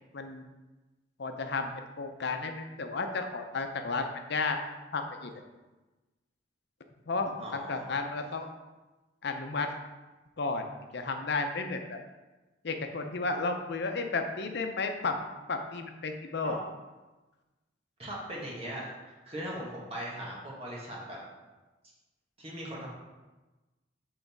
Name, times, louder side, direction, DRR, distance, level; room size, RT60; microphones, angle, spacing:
voice 1, 1.2-1.7 2.0-4.6 4.9-5.3 7.1-8.5 9.2-9.7 10.4-10.6 10.9-12.0 12.6-15.2 15.5-16.6, left 3 dB, 65° left, 5 dB, 0.7 m, -33 dB
voice 2, 7.4-7.9 16.4-16.6 18.0-21.2 22.4-22.9, right 1 dB, 35° right, -5 dB, 1.9 m, -39 dB
7.7 x 3.9 x 4.6 m, 1.1 s
head